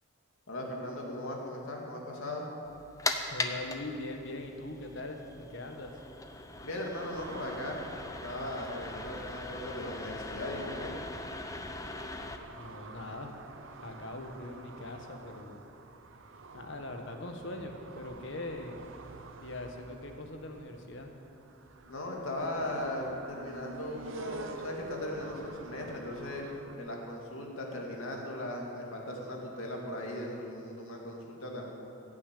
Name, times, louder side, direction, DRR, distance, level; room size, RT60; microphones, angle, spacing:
voice 1, 0.5-2.5 6.6-7.9 8.2-10.9 21.9-31.7, left 1 dB, 80° left, -1 dB, 2.3 m, -38 dB
sound 1, 2.7-12.4, left 2 dB, 15° left, 0.6 m, -40 dB
voice 2, 3.3-5.9 12.5-13.3 13.8-15.6 16.5-18.8 19.4-21.1, left 2 dB, 60° left, 4 dB, 1.3 m, -41 dB
sound 2, 7.1-26.8, right 3 dB, 70° right, 0.8 m, -49 dB
15.0 x 7.2 x 8.3 m, 2.8 s
head